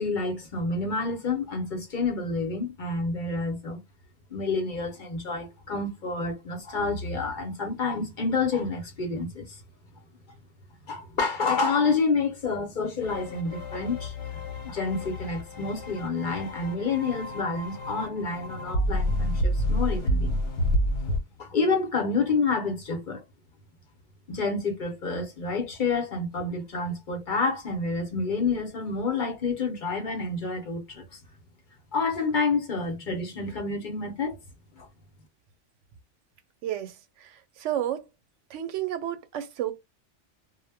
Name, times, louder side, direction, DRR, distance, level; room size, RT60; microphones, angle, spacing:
voice 1, 0.0-3.8 4.3-9.6 10.9-14.1 14.6-20.4 21.4-23.2 24.3-31.2 31.9-34.4 34.8-34.9, left 4 dB, 50° left, 0.8 m, -28 dB
sound 1, 13.0-21.2, equal, 75° left, 1.1 m, -29 dB
voice 2, 36.6-38.1 38.5-39.7, right 11 dB, 90° right, 0.9 m, -32 dB
2.1 x 2.1 x 3.3 m
omnidirectional pair, 1.2 m